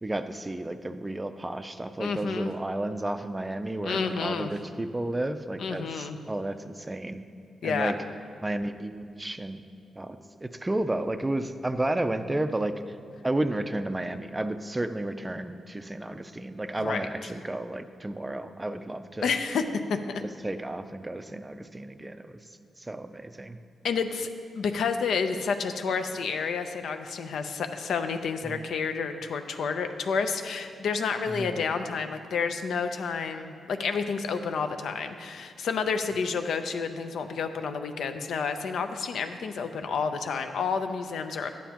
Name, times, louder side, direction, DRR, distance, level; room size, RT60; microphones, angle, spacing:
voice 1, 0.0-7.2 7.6-8.0 8.4-9.6 10.0-12.7 13.2-19.3 20.4-22.3 22.8-23.6 28.5-28.6 31.4-31.6, right 1 dB, 15° right, 9 dB, 0.4 m, -32 dB
voice 2, 2.0-2.5 3.8-4.5 5.6-6.2 7.6-7.9 16.8-17.1 19.2-20.2 23.8-24.3 24.5-41.5, left 5 dB, 80° left, 7 dB, 0.5 m, -30 dB
11.5 x 9.1 x 2.9 m, 2.1 s
cardioid pair, 110°, 0 cm